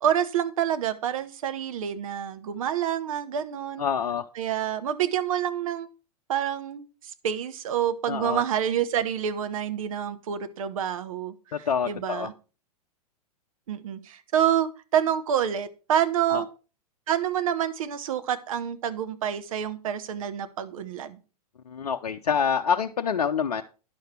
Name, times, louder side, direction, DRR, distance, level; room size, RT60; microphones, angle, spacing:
voice 1, 0.0-3.9 4.3-5.9 6.3-6.9 7.2-12.3 13.7-16.5 17.1-21.2, right 9 dB, 60° right, 11 dB, 1.1 m, -27 dB
voice 2, 3.8-4.2 8.1-8.4 11.5-12.3 16.3-16.4 21.7-23.6, left 7 dB, 70° left, 5 dB, 0.6 m, -26 dB
10.5 x 6.6 x 4.4 m, 0.33 s
figure-of-eight pair, 105°, 20 cm